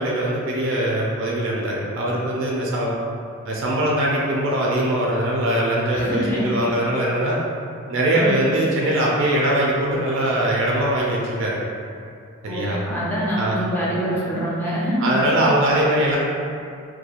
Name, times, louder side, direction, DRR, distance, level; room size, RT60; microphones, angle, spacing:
voice 1, 0.0-3.0 3.4-7.4 7.9-11.6 12.4-12.8 13.4-13.6 15.0-16.2, right 1 dB, 60° right, -4 dB, 0.4 m, -21 dB
voice 2, 5.9-6.5 8.1-8.3 12.4-15.1, equal, 10° left, -8 dB, 0.5 m, -25 dB
2.8 x 2.2 x 2.4 m, 2.4 s
head